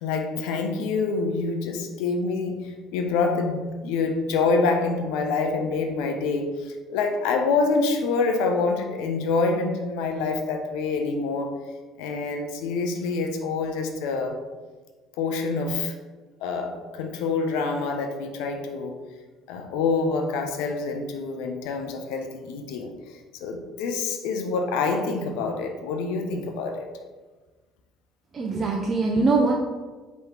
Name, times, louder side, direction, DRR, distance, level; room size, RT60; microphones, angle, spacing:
voice 1, 0.0-11.6 12.0-14.3 15.2-15.9 16.4-19.0 19.5-26.9, left 4 dB, 75° left, 4 dB, 0.5 m, -26 dB
voice 2, 28.3-29.5, right 3 dB, 40° right, -1 dB, 0.5 m, -22 dB
4.6 x 3.1 x 3.0 m, 1.3 s
hypercardioid pair, 65°, 0 cm